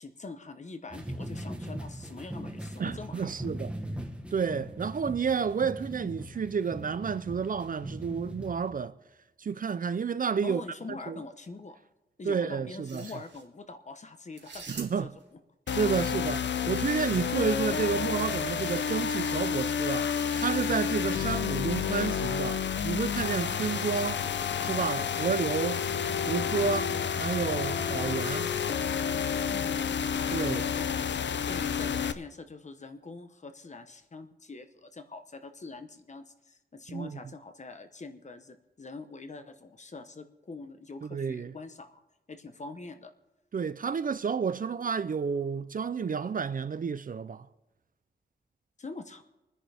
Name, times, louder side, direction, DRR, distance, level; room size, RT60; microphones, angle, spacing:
voice 1, 0.0-3.3 10.4-11.8 12.2-14.7 15.0-15.1 21.1-21.3 29.5-29.8 30.7-42.0 42.3-43.1 48.8-49.2, left 3 dB, 40° left, 0.9 m, -44 dB
sound 1, 0.9-8.7, equal, 5° right, 1.2 m, -40 dB
voice 2, 2.8-3.7 4.3-8.9 9.4-10.6 11.1-11.2 12.2-13.1 14.7-15.1 15.7-24.2 24.6-25.8 26.3-28.5 30.3-30.7 36.9-37.2 41.0-41.5 43.5-47.5, right 6 dB, 50° right, 0.4 m, -30 dB
sound 2, 12.7-13.4 14.3-15.2 16.4-17.6 18.5-19.0 19.9-21.0, right 4 dB, 75° right, 1.8 m, -48 dB
sound 3, 15.7-32.1, left 7 dB, 75° left, 0.5 m, -30 dB
26.5 x 10.0 x 3.4 m
wide cardioid pair, 140°, 19 cm